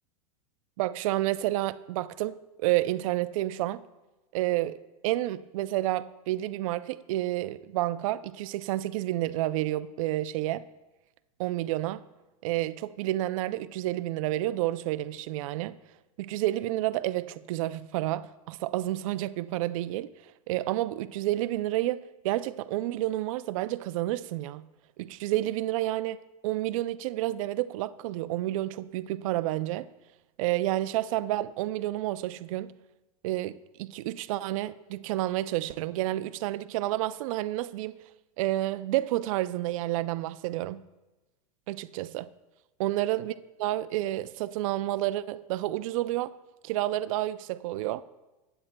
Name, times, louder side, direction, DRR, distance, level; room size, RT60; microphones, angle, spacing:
voice 1, 0.8-3.8 4.3-10.6 11.4-12.0 12.4-15.8 16.2-20.1 20.5-24.6 25.0-29.9 30.4-32.7 33.2-38.0 38.4-40.8 41.7-42.3 42.8-43.3 43.6-46.3 46.6-48.0, right 15 dB, 65° right, 0.4 m, -30 dB
15.5 x 8.7 x 2.2 m
supercardioid pair, 130°, 19 cm